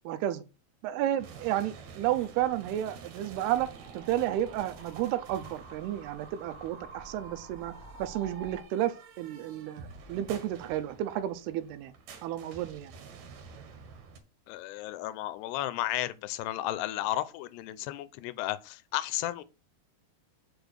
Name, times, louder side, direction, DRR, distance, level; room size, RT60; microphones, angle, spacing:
voice 1, 0.1-0.4 0.8-7.7 8.0-11.9 12.2-12.9, right 12 dB, 80° right, 2.7 m, -32 dB
sound 1, 1.2-14.2, right 5 dB, 60° right, 2.8 m, -50 dB
sound 2, 3.3-8.6, right 4 dB, 20° right, 2.3 m, -48 dB
voice 2, 14.5-19.4, left 14 dB, 90° left, 2.7 m, -33 dB
7.0 x 5.0 x 6.4 m
omnidirectional pair, 4.7 m